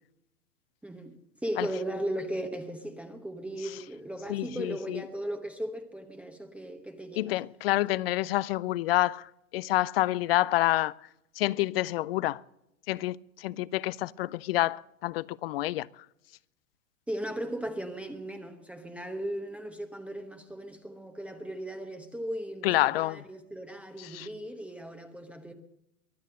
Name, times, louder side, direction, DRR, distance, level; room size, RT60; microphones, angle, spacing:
voice 1, 0.8-1.2 1.4-7.4 17.1-25.5, right 1 dB, 5° right, 1.0 m, -37 dB
voice 2, 4.3-5.0 7.2-10.9 11.4-12.4 12.9-15.9 22.6-23.2 24.0-24.3, left 16 dB, 45° left, 0.5 m, -28 dB
23.0 x 8.3 x 6.5 m
hypercardioid pair, 115°, 42 cm